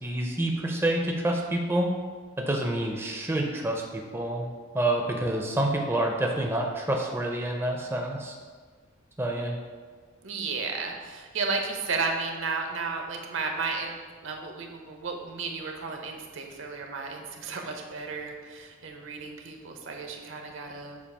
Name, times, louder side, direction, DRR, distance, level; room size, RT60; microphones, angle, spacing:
voice 1, 0.0-1.9 2.4-4.5 4.7-8.3 9.2-9.6, right 1 dB, 10° right, 1 dB, 0.4 m, -28 dB
voice 2, 10.2-14.0 14.2-21.0, right 4 dB, 70° right, 2 dB, 0.8 m, -33 dB
7.1 x 2.4 x 5.4 m, 1.5 s
head